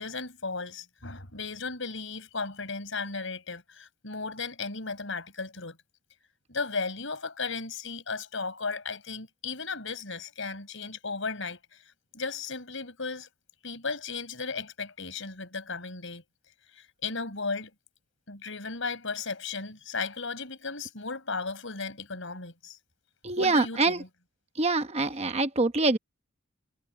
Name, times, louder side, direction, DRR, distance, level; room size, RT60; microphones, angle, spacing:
voice 1, 0.0-5.8 6.5-13.3 13.6-16.2 16.7-17.7 18.3-22.8 23.4-24.1, left 4 dB, 65° left, 5.7 m, -35 dB
voice 2, 23.2-24.0 24.6-26.0, right 3 dB, 30° right, 1.0 m, -25 dB
head